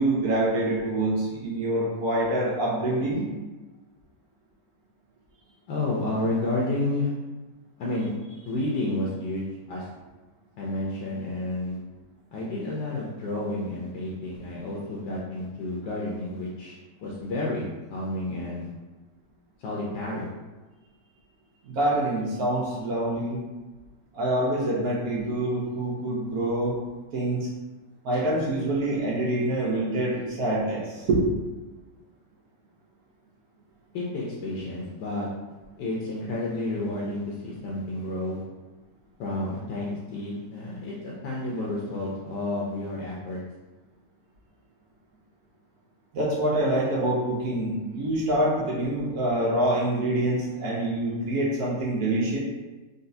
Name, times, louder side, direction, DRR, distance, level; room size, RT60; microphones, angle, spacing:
voice 1, 0.0-3.2 21.6-23.4 24.1-26.8 27.1-27.5 28.0-31.2 46.1-52.4, right 1 dB, 65° right, -5 dB, 1.1 m, -26 dB
voice 2, 5.7-7.1 7.8-8.1 8.5-9.4 9.7-9.8 10.6-11.8 12.3-18.7 19.6-20.3 21.8-21.9 28.1-28.2 33.9-35.3 35.8-38.4 39.2-43.4, left 2 dB, 80° left, -5 dB, 1.2 m, -30 dB
3.9 x 2.3 x 2.6 m, 1.2 s
omnidirectional pair, 1.9 m